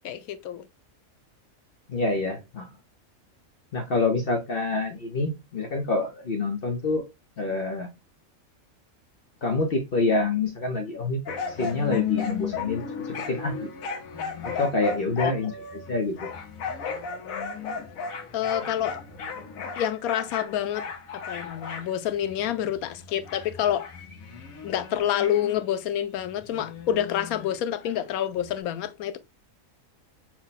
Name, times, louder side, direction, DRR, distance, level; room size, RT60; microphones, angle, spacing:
voice 1, 0.0-0.6 15.2-15.3 18.3-19.0 19.8-20.9 21.3-23.9 24.6-29.2, left 10 dB, 90° left, 1.1 m, -28 dB
voice 2, 1.9-2.7 3.7-7.0 7.4-7.9 9.4-12.8 13.3-13.7 14.4-16.2, left 3 dB, 50° left, 0.8 m, -27 dB
sound 1, 11.3-25.6 26.2-28.0 28.5-28.6, left 6 dB, 70° left, 1.3 m, -35 dB
5.9 x 2.1 x 4.0 m
omnidirectional pair, 1.5 m